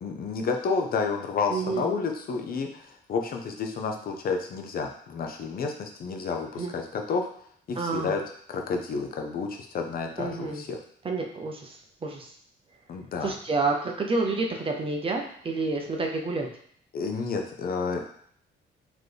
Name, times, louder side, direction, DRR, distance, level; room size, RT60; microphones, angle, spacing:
voice 1, 0.0-7.3 7.7-8.2 8.5-10.8 12.9-13.3 16.9-18.0, left 4 dB, 50° left, 3 dB, 0.6 m, -30 dB
voice 2, 1.5-1.9 6.6-6.7 7.8-8.1 10.2-10.6 11.0-11.8 12.0-12.3 13.2-16.5, right 3 dB, 30° right, 2 dB, 0.5 m, -29 dB
4.1 x 2.9 x 3.3 m, 0.62 s
cardioid pair, 140°, 20 cm